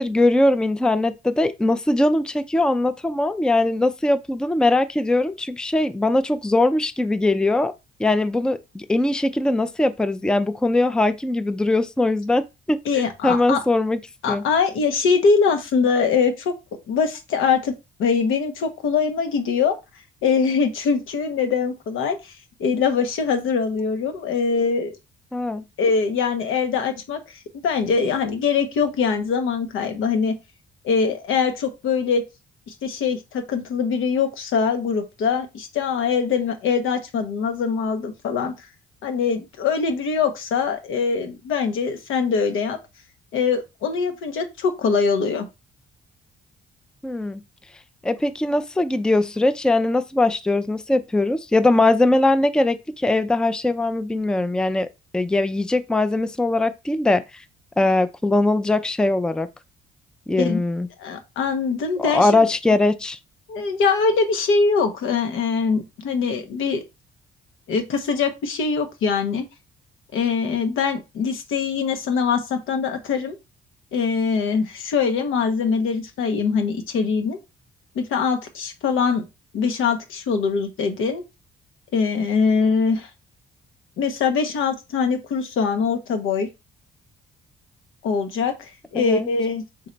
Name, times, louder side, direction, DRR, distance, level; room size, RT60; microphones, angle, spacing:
voice 1, 0.0-7.7 8.0-12.4 12.7-12.8 13.2-14.0 14.3-14.4 25.3-25.6 47.0-47.4 48.0-54.9 55.1-57.2 57.8-59.5 60.3-60.9 62.0-63.2 89.0-89.3, left 2 dB, 5° left, 0.4 m, -21 dB
voice 2, 12.8-13.6 14.2-16.5 16.9-17.7 18.0-19.8 20.2-22.3 22.6-24.9 25.8-27.2 27.6-30.4 30.8-32.2 32.7-38.5 39.0-42.8 43.3-45.5 60.4-60.6 61.0-62.4 63.5-66.8 67.7-69.5 70.1-73.4 73.9-77.4 77.9-79.3 79.5-81.2 81.9-83.1 84.0-86.5 88.0-89.6, left 5 dB, 85° left, 1.0 m, -22 dB
3.8 x 3.2 x 4.0 m
cardioid pair, 90°, 20 cm